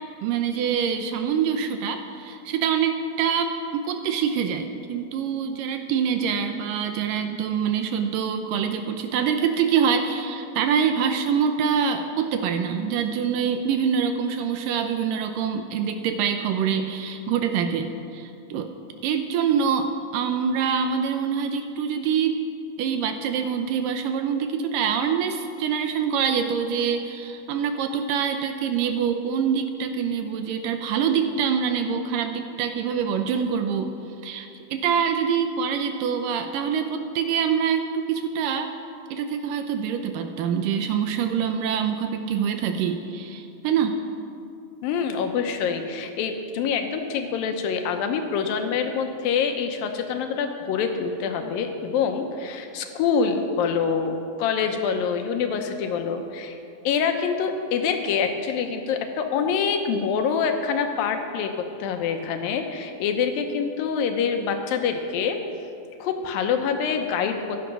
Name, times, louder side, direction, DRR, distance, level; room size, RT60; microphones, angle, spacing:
voice 1, 0.2-18.7 19.0-22.4 22.8-33.9 34.2-38.7 39.1-44.0, right 7 dB, 80° right, 7 dB, 2.2 m, -25 dB
voice 2, 44.8-56.6 56.8-61.5 61.8-65.4 66.0-67.6, left 6 dB, 75° left, 6 dB, 2.6 m, -25 dB
15.0 x 11.0 x 6.0 m, 2.6 s
omnidirectional pair, 4.2 m